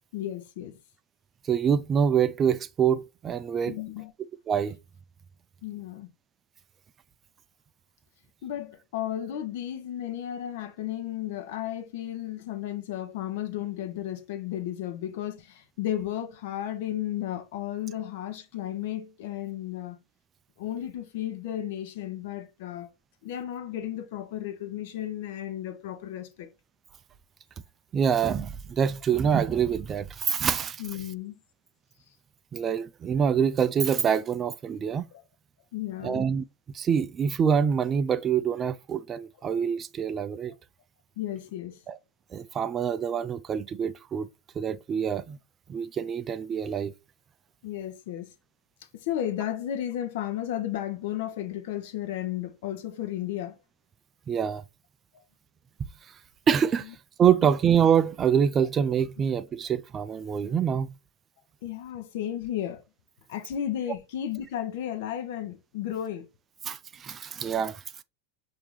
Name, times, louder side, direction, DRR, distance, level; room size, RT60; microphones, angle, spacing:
voice 1, 0.1-0.7 3.7-4.1 5.6-6.1 8.4-20.0 20.6-22.9 23.2-26.5 30.8-31.4 35.7-36.2 41.2-41.8 47.6-48.3 48.9-53.5 55.1-55.2 61.6-62.8 63.3-66.3, left 11 dB, 60° left, 0.8 m, -33 dB
voice 2, 1.5-3.8 4.5-4.8 27.9-30.8 32.5-35.1 36.0-36.4 36.7-40.5 41.9-42.0 42.3-44.3 44.6-45.4 45.7-46.9 54.3-54.6 56.5-56.9 57.2-60.9 66.6-67.8, right 7 dB, 25° right, 0.3 m, -25 dB
5.7 x 2.8 x 3.2 m
figure-of-eight pair, 90°, 0 cm